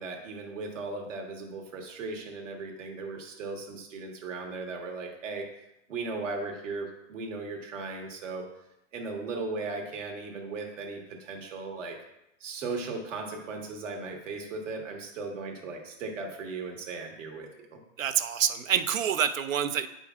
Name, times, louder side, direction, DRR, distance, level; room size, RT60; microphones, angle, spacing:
voice 1, 0.0-5.5 5.9-8.4 8.9-12.0 12.4-17.8, right 3 dB, 70° right, 2 dB, 1.5 m, -37 dB
voice 2, 18.0-19.9, right 9 dB, 85° right, 11 dB, 0.6 m, -27 dB
8.3 x 5.1 x 2.4 m, 0.84 s
hypercardioid pair, 145°, 39 cm